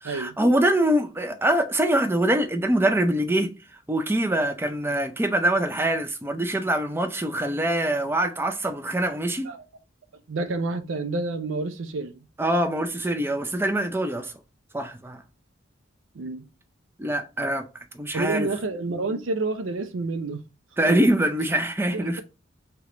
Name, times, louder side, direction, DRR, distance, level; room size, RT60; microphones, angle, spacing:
voice 1, 0.0-3.6 3.9-9.5 12.4-14.3 14.7-15.2 17.0-17.7 17.9-18.5 20.8-22.2, right 1 dB, 10° right, 0.5 m, -24 dB
voice 2, 10.3-12.2 16.1-16.4 18.1-20.4 20.9-21.0 21.9-22.2, right 3 dB, 80° right, 0.5 m, -29 dB
3.4 x 2.9 x 3.7 m
head